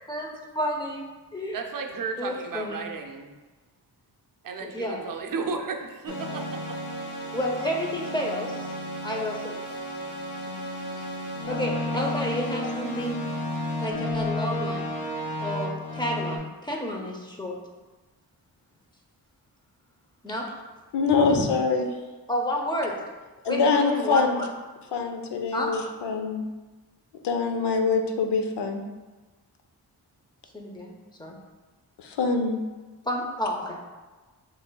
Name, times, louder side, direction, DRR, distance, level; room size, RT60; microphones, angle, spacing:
voice 1, 0.5-1.0 1.3-1.6 2.2-2.8 4.6-5.0 7.3-8.8 9.0-9.6 10.5-10.7 11.5-13.2 13.8-14.9 15.4-17.6 20.2-20.5 21.2-21.5 22.3-23.0 23.5-24.5 25.5-25.7 30.5-30.9 31.2-31.4 33.1-33.8, equal, 10° left, -1 dB, 0.6 m, -30 dB
voice 2, 1.5-3.3 4.4-6.8, right 4 dB, 55° right, 3 dB, 0.5 m, -34 dB
sound 1, 6.1-16.4, left 1 dB, 50° left, 0.9 m, -32 dB
voice 3, 20.9-21.9 23.4-24.5 24.9-26.5 27.2-28.8 32.0-32.6, left 4 dB, 85° left, 4 dB, 0.6 m, -24 dB
6.1 x 3.2 x 2.2 m, 1.3 s
wide cardioid pair, 130°, 40 cm